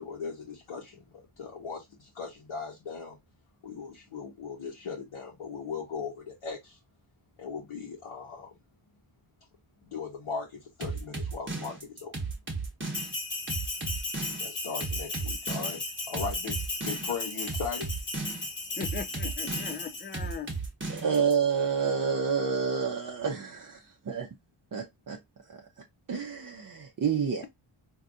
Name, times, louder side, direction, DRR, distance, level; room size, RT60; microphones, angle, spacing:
voice 1, 0.0-3.2 3.6-6.8 7.4-8.5 9.9-12.1 14.4-15.8 16.1-17.9, left 5 dB, 75° left, 1.1 m, -38 dB
sound 1, 10.8-21.3, right 3 dB, 25° right, 1.1 m, -35 dB
Bell, 12.9-20.4, left 3 dB, 40° left, 1.0 m, -36 dB
voice 2, 18.8-20.5, left 6 dB, 20° left, 0.5 m, -38 dB
voice 3, 20.9-24.3 24.7-25.2 25.5-25.7 26.1-27.5, right 6 dB, 40° right, 0.6 m, -29 dB
3.8 x 2.7 x 2.3 m
wide cardioid pair, 80°, 49 cm